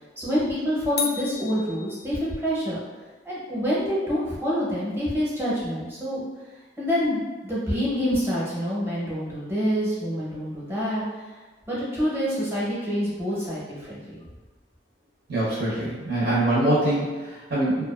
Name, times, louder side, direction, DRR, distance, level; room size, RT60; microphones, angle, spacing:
voice 1, 0.2-2.8 3.2-6.2 6.8-11.0 11.7-14.2, equal, 15° right, -7 dB, 0.7 m, -27 dB
sound 1, 1.0-2.6, left 6 dB, 60° left, 0.3 m, -33 dB
voice 2, 15.3-17.8, right 1 dB, 70° right, -8 dB, 0.7 m, -24 dB
2.5 x 2.2 x 2.3 m, 1.2 s
head